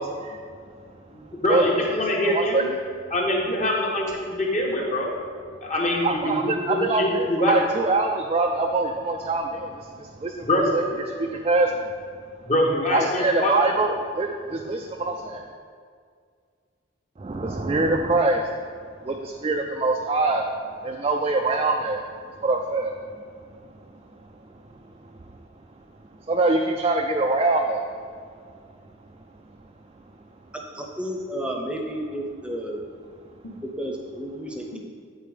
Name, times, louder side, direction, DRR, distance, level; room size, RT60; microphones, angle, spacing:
voice 1, 0.0-1.6 2.2-2.6 6.0-10.8 11.2-12.5 12.9-15.5 17.2-30.5 33.3-33.5, right 2 dB, 30° right, 2 dB, 0.3 m, -26 dB
voice 2, 1.1-2.7 3.1-5.1 5.6-7.6 10.5-10.7 12.4-13.5, left 1 dB, 40° left, -2 dB, 1.1 m, -24 dB
voice 3, 30.7-32.8 33.6-34.8, equal, 5° right, 0 dB, 0.7 m, -32 dB
8.6 x 4.3 x 4.9 m, 2.1 s
head